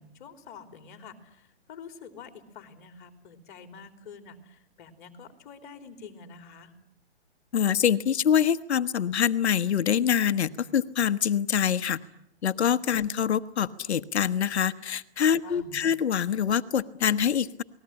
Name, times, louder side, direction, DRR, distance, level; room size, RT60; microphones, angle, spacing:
voice 1, 0.0-6.7 15.4-15.9, left 5 dB, 45° left, 8 dB, 3.4 m, -47 dB
voice 2, 7.5-12.0 12.4-17.6, left 8 dB, 75° left, 12 dB, 1.2 m, -25 dB
29.5 x 20.5 x 9.9 m, 0.78 s
hypercardioid pair, 155°, 33 cm